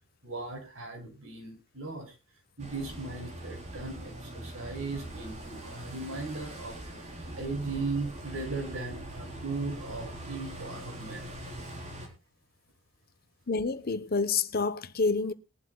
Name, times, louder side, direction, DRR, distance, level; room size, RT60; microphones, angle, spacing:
voice 1, 0.2-2.1 2.6-6.9 7.4-11.3, right 3 dB, 85° right, 5.7 m, -37 dB
sound 1, 2.6-12.1, right 1 dB, 35° right, 4.1 m, -42 dB
voice 2, 13.5-15.3, left 4 dB, 50° left, 0.9 m, -28 dB
21.5 x 11.5 x 2.3 m
head